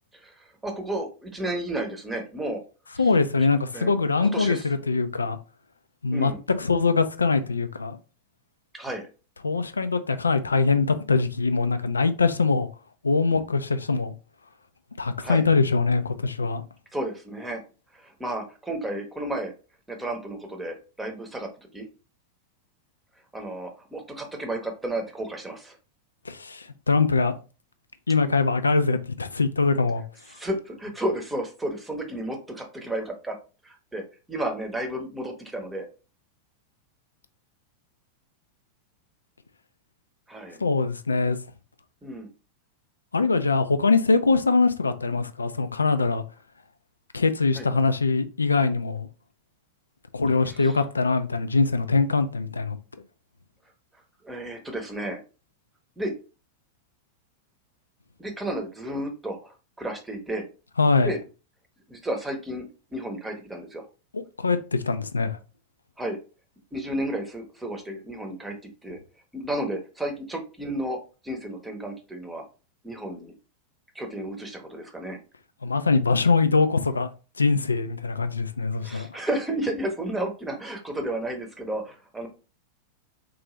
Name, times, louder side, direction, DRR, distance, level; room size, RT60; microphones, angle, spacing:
voice 1, 0.1-2.6 2.9-3.1 3.7-4.7 6.1-6.4 8.7-9.1 15.2-15.5 16.9-17.6 17.9-19.5 19.9-21.9 23.3-25.8 30.3-33.4 33.6-35.9 40.3-40.6 42.0-42.3 47.6-47.7 50.4-50.8 54.2-55.2 56.0-56.2 58.2-60.5 61.0-61.2 61.9-63.8 66.0-66.2 66.7-68.6 68.8-69.0 69.3-71.0 71.2-72.4 72.8-73.3 73.9-75.2 78.8-82.3, right 1 dB, 10° right, 0.8 m, -32 dB
voice 2, 3.0-5.4 6.0-6.3 6.6-8.0 9.4-12.7 13.0-14.1 15.0-16.6 26.3-27.3 28.1-30.0 40.6-41.4 43.1-46.2 47.1-49.1 50.1-52.8 60.8-61.1 64.1-65.4 75.6-77.1 77.4-79.2, left 4 dB, 75° left, 0.3 m, -23 dB
3.7 x 2.5 x 3.0 m
figure-of-eight pair, 90°, 0 cm